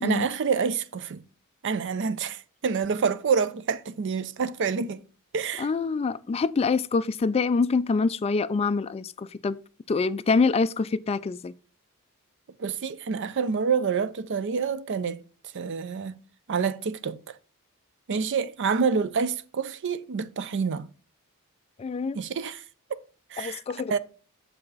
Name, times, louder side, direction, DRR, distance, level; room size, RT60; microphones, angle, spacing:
voice 1, 0.0-1.2 1.6-5.0 5.3-5.7 12.6-15.2 15.5-16.1 16.5-17.4 18.1-20.9 22.1-22.6 23.3-23.6 23.9-24.0, right 5 dB, 55° right, 0.5 m, -27 dB
voice 2, 5.6-9.6 9.9-11.5 21.8-22.2 23.4-24.0, left 4 dB, 25° left, 0.3 m, -25 dB
7.1 x 5.5 x 4.0 m
head